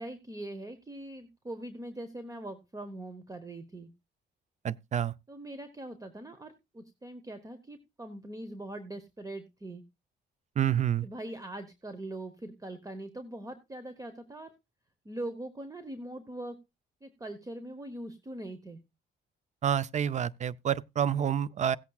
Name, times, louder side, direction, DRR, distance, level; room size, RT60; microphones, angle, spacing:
voice 1, 0.0-3.9 5.3-9.8 11.0-14.5 15.0-16.6 17.0-18.8, right 1 dB, 15° right, 1.0 m, -42 dB
voice 2, 4.6-5.1 10.6-11.1 19.6-21.8, right 9 dB, 35° right, 0.5 m, -28 dB
17.5 x 8.3 x 2.3 m
cardioid pair, 90°, 20 cm